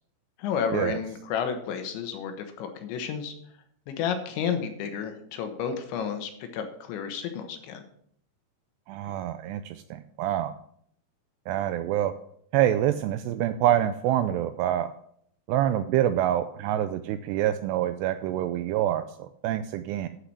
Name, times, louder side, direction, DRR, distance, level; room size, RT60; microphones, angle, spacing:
voice 1, 0.4-3.3 3.9-7.8, left 7 dB, 80° left, 6 dB, 3.5 m, -31 dB
voice 2, 8.9-10.5 11.5-12.1 12.5-14.9 15.5-20.1, right 12 dB, 85° right, 10 dB, 2.4 m, -26 dB
11.5 x 5.9 x 6.2 m, 0.66 s
omnidirectional pair, 5.2 m